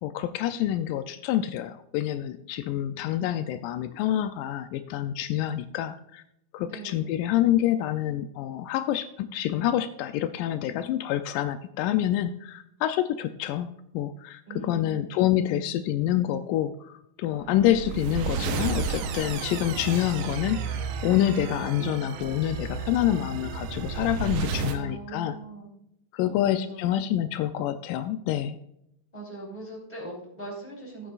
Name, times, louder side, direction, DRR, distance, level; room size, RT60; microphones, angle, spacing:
voice 1, 0.0-6.2 6.5-25.4 26.1-28.6, left 12 dB, 85° left, 10 dB, 2.1 m, -27 dB
voice 2, 6.6-7.1 14.5-15.7 24.5-25.7 26.2-27.1 29.1-31.1, right 3 dB, 10° left, -4 dB, 3.6 m, -41 dB
sound 1, 17.4-24.8, right 5 dB, 75° right, 2.3 m, -32 dB
15.5 x 8.6 x 2.4 m, 0.78 s
omnidirectional pair, 3.8 m